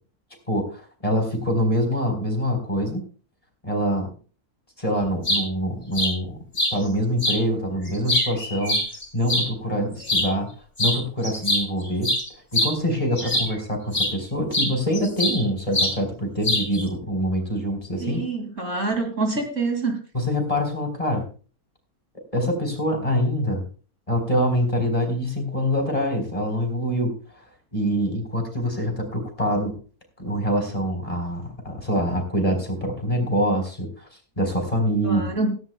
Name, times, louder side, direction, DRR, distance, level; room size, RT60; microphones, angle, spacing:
voice 1, 0.5-3.0 3.6-4.1 4.8-6.4 6.7-8.8 9.1-10.5 10.8-12.1 12.5-18.2 20.1-21.2 22.3-23.6 24.1-27.1 27.7-29.8 30.2-34.1 34.4-35.3, equal, 20° left, 3 dB, 4.0 m, -25 dB
sound 1, 5.0-5.4 5.9-6.1 6.6-6.7 7.2-7.4 7.9-9.5 10.0-10.3 10.8-11.0 11.2-13.6 13.9-14.1 14.5-15.4 15.7-16.0 16.4-16.8, left 1 dB, 45° left, 4.1 m, -23 dB
voice 2, 18.0-20.0 35.0-35.5, right 3 dB, 55° right, 4 dB, 2.8 m, -26 dB
17.0 x 14.5 x 2.2 m, 0.38 s
omnidirectional pair, 1.6 m